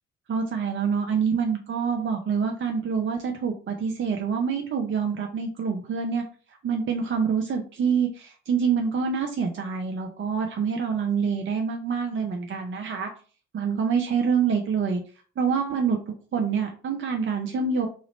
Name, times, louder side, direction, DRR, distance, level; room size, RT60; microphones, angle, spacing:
voice 1, 0.3-6.2 6.6-13.1 13.5-15.0 15.4-16.0 16.3-17.9, right 6 dB, 35° right, 3 dB, 0.6 m, -26 dB
3.1 x 2.4 x 3.1 m, 0.39 s
figure-of-eight pair, 45°, 37 cm